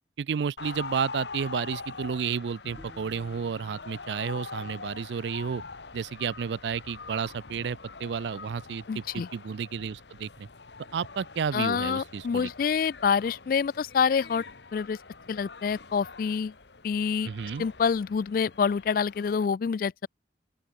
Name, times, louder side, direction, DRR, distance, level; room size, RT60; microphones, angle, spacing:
voice 1, 0.2-5.6 5.9-10.5 10.9-12.5 17.2-17.6, right 6 dB, 75° right, 0.4 m, -32 dB
sound 1, 0.6-19.5, left 4 dB, 75° left, 1.6 m, -44 dB
sound 2, 2.8-5.9, equal, ahead, 6.7 m, -56 dB
voice 2, 8.9-9.3 11.5-14.4 14.7-15.0 15.3-16.5 16.8-17.3 17.6-20.1, left 6 dB, 50° left, 0.3 m, -27 dB
open air
head